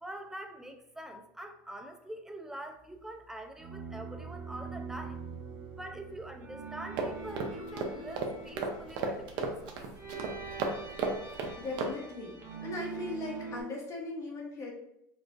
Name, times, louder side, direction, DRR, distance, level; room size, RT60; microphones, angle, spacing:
voice 1, 0.0-5.2 5.8-9.8, right 1 dB, 5° right, 6 dB, 0.3 m, -44 dB
sound 1, 3.6-13.6, right 4 dB, 20° right, 0.8 m, -44 dB
sound 2, 7.0-11.9, right 3 dB, 55° right, 0.7 m, -35 dB
voice 2, 11.6-14.7, left 2 dB, 35° left, -2 dB, 1.0 m, -38 dB
4.6 x 2.4 x 2.5 m, 0.78 s
supercardioid pair, 125°, 9 cm